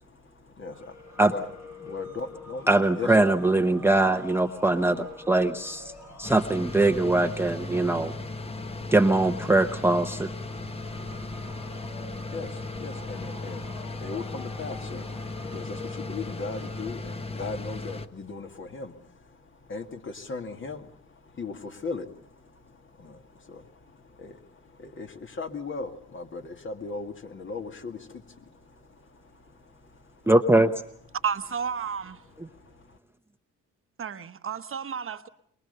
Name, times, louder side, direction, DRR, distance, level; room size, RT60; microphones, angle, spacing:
voice 1, 0.0-1.5 1.8-2.7 3.0-3.3 5.9-6.3 8.5-8.9 10.5-30.3 32.5-33.0, left 4 dB, 40° left, 6 dB, 2.1 m, -39 dB
sound 1, 0.7-17.2, left 3 dB, 65° left, 6.6 m, -47 dB
voice 2, 2.7-5.9 6.2-8.1 8.9-10.3 30.3-30.7, right 2 dB, 10° right, 6 dB, 0.9 m, -22 dB
sound 2, 6.2-18.1, left 2 dB, 20° left, 1.2 m, -36 dB
voice 3, 31.2-32.2 34.0-35.3, right 7 dB, 45° right, 10 dB, 1.1 m, -32 dB
23.5 x 22.0 x 6.8 m, 0.67 s
cardioid pair, 90°, 30 cm